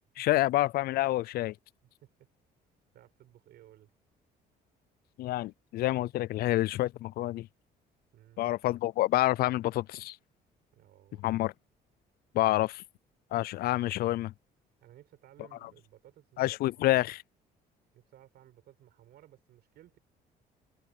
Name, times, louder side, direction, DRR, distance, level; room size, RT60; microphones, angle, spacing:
voice 1, 0.2-1.5 5.2-7.5 8.4-10.2 11.2-11.5 12.3-12.8 13.3-14.3 16.4-17.2, left 16 dB, 65° left, 0.4 m, -28 dB
voice 2, 2.9-3.9 8.1-8.5 10.7-11.3 14.8-16.9 17.9-20.0, right 13 dB, 70° right, 6.6 m, -58 dB
cardioid pair, 110°, 17 cm